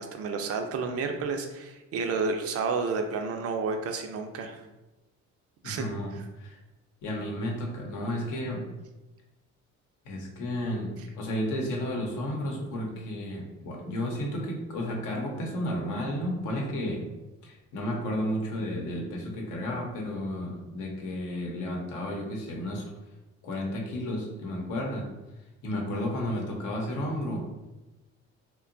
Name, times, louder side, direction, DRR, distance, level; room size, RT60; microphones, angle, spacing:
voice 1, 0.0-4.6 5.6-5.9, right 4 dB, 55° right, 5 dB, 0.4 m, -31 dB
voice 2, 5.6-6.6 7.0-8.7 10.0-17.1 17.4-22.8 23.4-25.1 25.6-27.6, left 1 dB, 85° left, -1 dB, 0.8 m, -32 dB
2.8 x 2.2 x 2.5 m, 1.0 s
cardioid pair, 85°, 30 cm